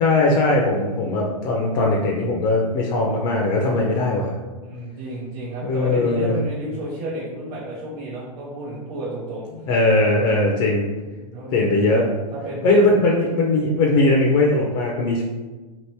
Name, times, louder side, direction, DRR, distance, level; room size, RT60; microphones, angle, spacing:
voice 1, 0.0-4.3 5.6-6.4 9.7-10.9 11.5-12.0 12.6-15.2, left 2 dB, 40° left, -2 dB, 0.6 m, -19 dB
voice 2, 4.6-9.5 11.2-12.0 12.3-13.0, right 1 dB, 40° right, -6 dB, 0.8 m, -32 dB
2.9 x 2.5 x 3.4 m, 1.2 s
hypercardioid pair, 105°, 21 cm